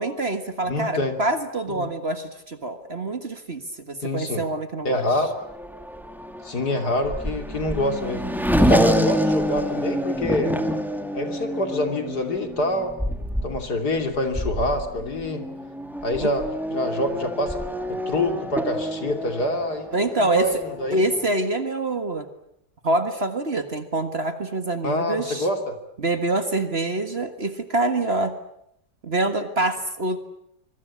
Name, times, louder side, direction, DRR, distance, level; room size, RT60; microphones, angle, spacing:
voice 1, 0.0-3.6 3.9-5.0 16.2-16.3 19.9-20.5 20.9-22.3 22.8-25.5 26.0-28.3 29.0-30.2, right 2 dB, 35° right, 8 dB, 1.8 m, -25 dB
voice 2, 0.6-1.1 1.7-1.9 4.0-4.4 4.9-5.3 6.4-10.6 11.1-12.9 13.4-15.4 16.0-16.5 16.7-17.6 17.9-21.1 24.8-25.8, left 1 dB, 60° left, 6 dB, 3.5 m, -26 dB
Race car auto racing / Accelerating revving vroom, 5.1-21.3, equal, ahead, 2.2 m, -27 dB
25.0 x 23.5 x 8.5 m, 0.77 s
omnidirectional pair, 1.9 m